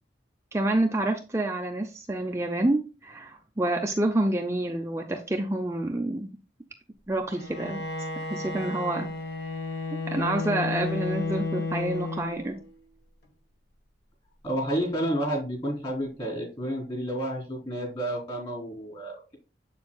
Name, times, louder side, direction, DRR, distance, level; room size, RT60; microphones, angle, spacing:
voice 1, 0.5-6.4 7.1-7.8 8.3-9.1 10.1-12.6, right 1 dB, 15° right, 3 dB, 0.5 m, -28 dB
Bowed string instrument, 7.3-12.7, left 3 dB, 65° left, 1.4 m, -32 dB
voice 2, 14.4-19.4, right 1 dB, 30° left, 0 dB, 3.4 m, -30 dB
7.5 x 7.0 x 2.3 m, 0.33 s
head